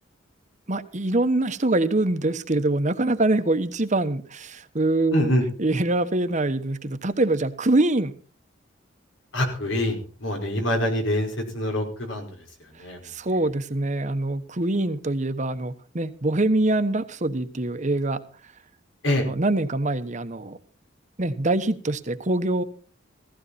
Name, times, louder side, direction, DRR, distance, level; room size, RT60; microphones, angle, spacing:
voice 1, 0.7-5.3 5.6-8.1 13.0-18.2 19.2-20.6 21.2-22.6, right 2 dB, 40° right, 11 dB, 1.2 m, -24 dB
voice 2, 5.1-5.4 9.3-12.4 12.8-13.0 19.0-19.3, left 1 dB, 85° left, 3 dB, 5.1 m, -25 dB
16.5 x 15.5 x 4.2 m, 0.39 s
head